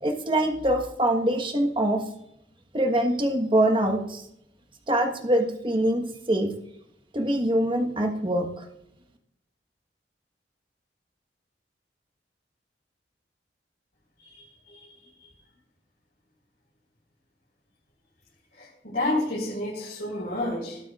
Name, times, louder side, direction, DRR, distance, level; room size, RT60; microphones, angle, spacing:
voice 1, 0.0-2.0 2.7-4.2 4.9-6.5 7.1-8.6, right 1 dB, 30° right, 4 dB, 1.4 m, -24 dB
voice 2, 18.6-20.9, left 1 dB, 60° left, -7 dB, 5.0 m, -29 dB
20.5 x 9.0 x 2.5 m, 0.80 s
head